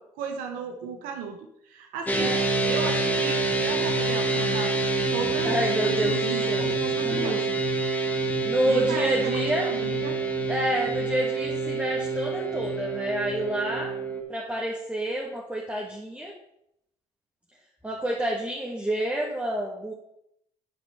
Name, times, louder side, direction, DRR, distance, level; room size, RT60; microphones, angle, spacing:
voice 1, 0.0-1.4 1.6-2.4 2.6-4.8 5.1-7.6 8.6-10.2, right 5 dB, 85° right, 5 dB, 0.9 m, -35 dB
sound 1, 2.1-14.2, right 3 dB, 10° left, 1.5 m, -27 dB
voice 2, 5.4-6.7 7.0-7.6 7.8-9.7 10.5-13.9 14.3-16.3 17.8-19.9, right 1 dB, 10° right, -2 dB, 1.6 m, -29 dB
9.6 x 4.3 x 5.5 m, 0.77 s
supercardioid pair, 70°, 14 cm